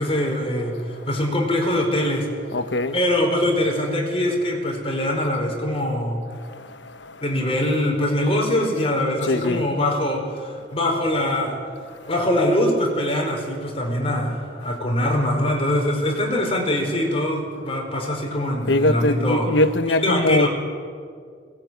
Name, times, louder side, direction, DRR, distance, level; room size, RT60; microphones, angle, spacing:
voice 1, 0.0-2.3 2.9-6.2 6.5-6.7 7.2-11.6 12.1-19.5 20.0-20.5, left 1 dB, 30° left, 4.8 m, -23 dB
voice 2, 2.5-3.0 9.2-9.7 18.7-20.5, left 1 dB, 75° left, 1.1 m, -21 dB
20.5 x 19.0 x 9.4 m
head